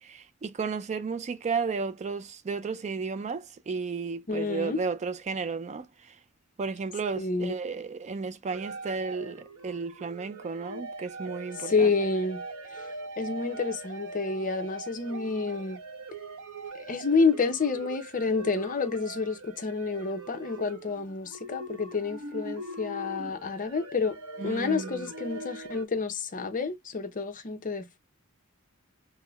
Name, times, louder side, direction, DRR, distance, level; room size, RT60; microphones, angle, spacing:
voice 1, 0.0-6.2 6.6-11.9 24.4-25.1, right 4 dB, 30° right, 0.3 m, -33 dB
voice 2, 4.3-4.8 7.2-7.6 11.6-12.4 13.2-15.8 16.7-24.2 24.4-28.0, left 4 dB, 40° left, 0.7 m, -29 dB
sound 1, 8.5-25.9, right 2 dB, 90° right, 0.9 m, -41 dB
5.3 x 2.1 x 2.3 m
head